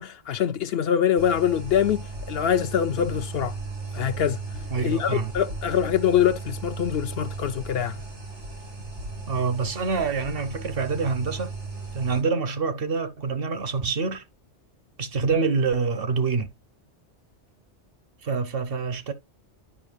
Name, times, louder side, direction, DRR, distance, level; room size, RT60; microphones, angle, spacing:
voice 1, 0.0-3.6 3.9-4.4 4.8-8.0, left 9 dB, 65° left, 0.7 m, -24 dB
sound 1, 1.2-12.2, right 3 dB, 80° right, 4.8 m, -36 dB
voice 2, 4.7-5.3 9.3-11.5 11.9-14.2 15.0-16.5 18.2-19.1, right 4 dB, 55° right, 1.0 m, -26 dB
9.8 x 5.2 x 2.5 m
omnidirectional pair, 1.2 m